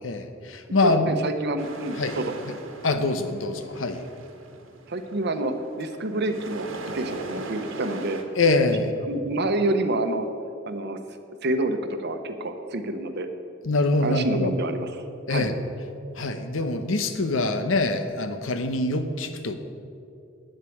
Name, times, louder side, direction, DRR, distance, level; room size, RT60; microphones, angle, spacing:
voice 1, 0.0-1.1 2.0-2.2 2.5-2.6 2.8-4.0 8.4-9.0 13.6-14.5 15.3-15.5 16.1-19.6, left 2 dB, 75° left, 8 dB, 0.9 m, -24 dB
voice 2, 0.8-2.2 4.9-8.2 9.0-10.3 10.6-11.0 11.4-13.3 14.0-14.9 15.3-15.5, right 2 dB, 55° right, 8 dB, 0.9 m, -28 dB
sound 1, 1.6-8.2, right 2 dB, 80° right, 1.4 m, -40 dB
9.2 x 7.9 x 8.5 m, 2.5 s
head